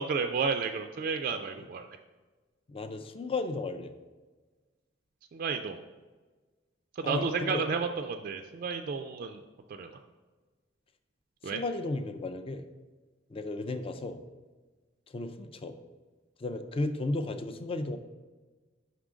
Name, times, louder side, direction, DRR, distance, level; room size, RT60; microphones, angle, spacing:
voice 1, 0.0-1.9 5.3-5.8 7.0-9.4 9.7-10.0 11.4-11.6, right 5 dB, 45° right, 6 dB, 0.3 m, -32 dB
voice 2, 2.7-3.9 7.0-7.6 11.4-12.7 13.3-14.2 15.1-15.7 16.4-18.0, left 2 dB, 30° left, 8 dB, 0.4 m, -34 dB
5.7 x 3.6 x 4.9 m, 1.3 s
head